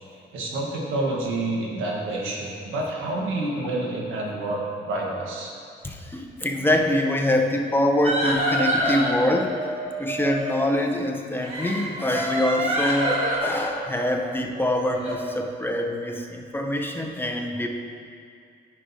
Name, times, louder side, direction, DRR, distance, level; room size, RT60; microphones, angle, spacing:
voice 1, 0.3-5.5, right 2 dB, 90° right, -2 dB, 1.3 m, -28 dB
voice 2, 5.8-9.5 10.0-13.1 13.4-17.7, left 1 dB, 10° left, 1 dB, 0.6 m, -24 dB
sound 1, 8.0-10.7 11.4-15.2, equal, 35° right, 1.8 m, -27 dB
9.6 x 6.3 x 2.7 m, 2.3 s
cardioid pair, 90°, 20 cm